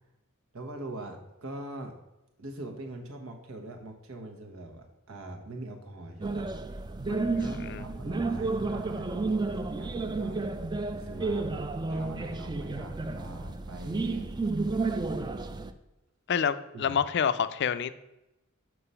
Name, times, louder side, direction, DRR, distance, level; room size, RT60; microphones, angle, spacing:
voice 1, 0.5-1.9 2.4-10.4 10.9-11.5 11.9-14.3 16.7-17.0, right 2 dB, 85° right, 3 dB, 1.3 m, -42 dB
sound 1, 6.2-15.7, right 3 dB, 20° right, 0.4 m, -31 dB
voice 2, 7.3-7.8 16.3-17.9, left 7 dB, 55° left, 13 dB, 0.4 m, -28 dB
6.9 x 4.7 x 5.6 m, 0.93 s
head